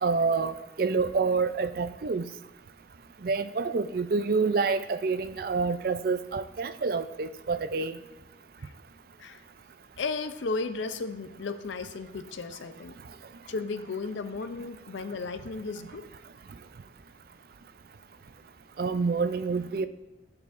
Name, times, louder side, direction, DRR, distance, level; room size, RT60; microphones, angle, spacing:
voice 1, 0.0-2.3 3.2-8.0 18.8-19.9, right 4 dB, 50° right, 11 dB, 0.4 m, -27 dB
voice 2, 10.0-13.0 13.5-16.0, left 4 dB, 85° left, 10 dB, 0.5 m, -34 dB
11.0 x 6.7 x 2.5 m, 0.98 s
head